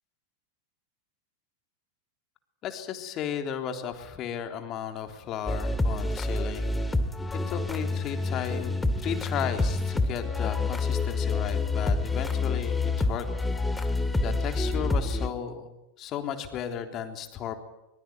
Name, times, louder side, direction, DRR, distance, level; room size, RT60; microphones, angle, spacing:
voice 1, 2.6-6.7 7.5-8.7 9.0-13.3 13.7-17.6, left 8 dB, 35° left, 6 dB, 3.6 m, -35 dB
sound 1, 5.5-15.3, left 3 dB, 10° left, 2.4 m, -28 dB
23.5 x 22.5 x 9.5 m, 0.94 s
figure-of-eight pair, 90°, 0 cm